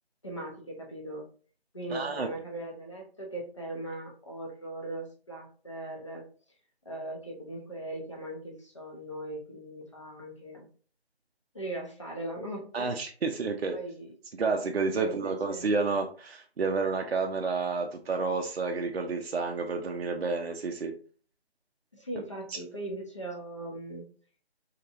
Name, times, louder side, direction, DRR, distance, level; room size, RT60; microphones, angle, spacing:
voice 1, 0.2-1.3 1.7-6.2 6.9-10.7 11.5-13.0 13.7-14.1 15.0-15.7 21.9-24.0, right 1 dB, 30° left, -1 dB, 0.6 m, -39 dB
voice 2, 1.9-2.3 12.7-13.8 14.4-20.9 22.2-22.3 22.5-22.6, right 4 dB, 65° right, 3 dB, 0.5 m, -30 dB
2.9 x 2.8 x 2.4 m, 0.42 s
figure-of-eight pair, 165°, 32 cm